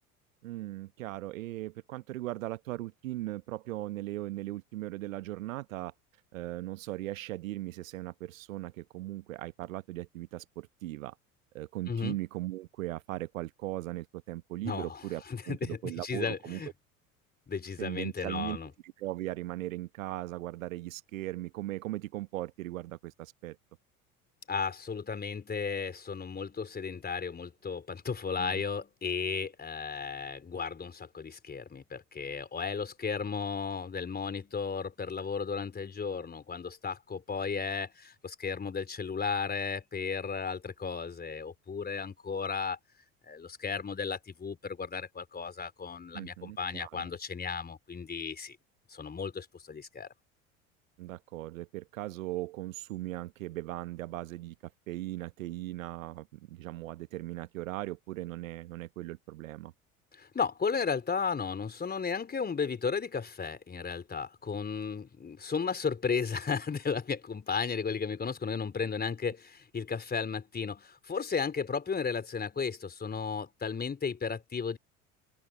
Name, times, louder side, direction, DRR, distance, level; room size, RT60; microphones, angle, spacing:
voice 1, 0.4-5.9 6.3-11.2 11.5-16.6 17.8-18.6 18.8-23.6 28.4-28.6 46.1-46.9 51.0-54.5 54.9-59.7, right 16 dB, 65° right, 1.1 m, -38 dB
voice 2, 11.9-12.2 14.6-15.0 15.3-16.7 17.5-18.7 24.5-42.8 43.2-48.6 48.9-50.1 60.1-74.8, left 5 dB, 20° left, 4.1 m, -34 dB
open air
figure-of-eight pair, 70°, 43 cm